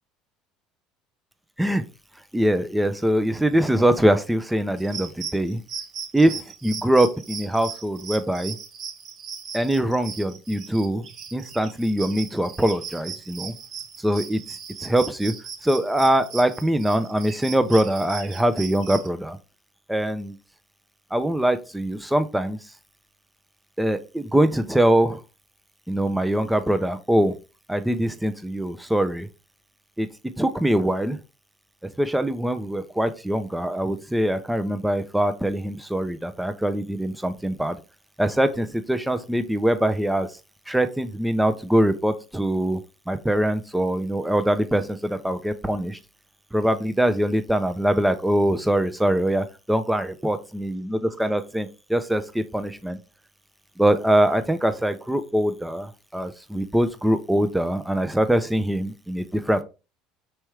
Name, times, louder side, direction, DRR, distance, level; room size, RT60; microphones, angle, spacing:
voice 1, 2.3-5.6 6.1-8.6 9.5-11.0 11.3-13.5 14.0-14.4 14.8-15.3 15.6-19.4 19.9-20.4 21.1-22.6 23.8-25.2 25.9-27.4 27.7-29.3 30.0-30.1 30.4-31.2 32.0-37.8 38.2-40.3 40.7-42.8 43.1-46.0 46.5-53.0 53.8-59.6, right 1 dB, 5° right, 10 dB, 0.6 m, -23 dB
sound 1, 4.8-19.1, right 6 dB, 55° right, 0.9 m, -38 dB
4.7 x 3.0 x 3.3 m, 0.30 s
hypercardioid pair, 75°, 0 cm